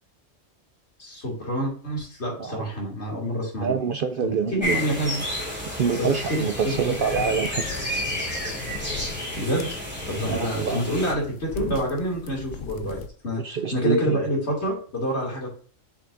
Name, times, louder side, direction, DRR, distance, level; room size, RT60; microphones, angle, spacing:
voice 1, 1.0-3.7 4.2-5.2 6.0-6.5 6.9-7.0 9.4-9.7 10.1-15.5, equal, 60° left, -2 dB, 2.8 m, -27 dB
voice 2, 3.6-4.8 5.8-7.7 10.2-10.8 13.4-14.2, right 6 dB, 60° right, 7 dB, 0.6 m, -26 dB
sound 1, 4.6-11.1, left 1 dB, 10° right, 2.4 m, -31 dB
sound 2, 6.7-13.1, left 6 dB, 80° left, 1.1 m, -39 dB
7.0 x 5.8 x 2.6 m, 0.43 s
omnidirectional pair, 1.3 m